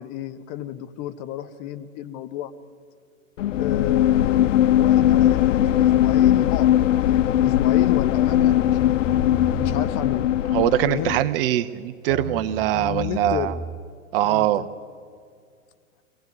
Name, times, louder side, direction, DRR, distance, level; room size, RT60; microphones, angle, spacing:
voice 1, 0.0-2.5 3.6-6.7 7.0-10.3 10.9-11.1 12.8-13.6 14.2-14.7, left 11 dB, 35° left, 10 dB, 1.3 m, -32 dB
sound 1, 3.4-11.2, left 12 dB, 65° left, 0.6 m, -19 dB
sound 2, 7.1-7.5 8.2-10.1 11.0-11.4 12.1-13.8, left 1 dB, 20° left, 1.5 m, -36 dB
voice 2, 10.5-13.5 14.1-14.6, right 13 dB, 45° right, 12 dB, 0.9 m, -22 dB
24.0 x 17.5 x 9.5 m, 2.1 s
hypercardioid pair, 110°, 41 cm